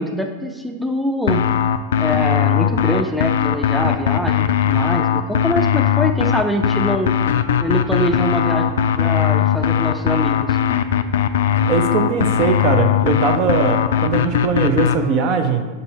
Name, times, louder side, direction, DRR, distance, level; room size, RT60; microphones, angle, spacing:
voice 1, 0.0-1.4 2.0-7.1 7.6-10.6, equal, ahead, 3 dB, 0.6 m, -23 dB
sound 1, 1.3-15.0, left 9 dB, 60° left, 0.3 m, -18 dB
voice 2, 11.7-15.7, right 5 dB, 40° right, 6 dB, 0.6 m, -20 dB
6.6 x 5.4 x 4.2 m, 1.3 s
figure-of-eight pair, 90°, 0 cm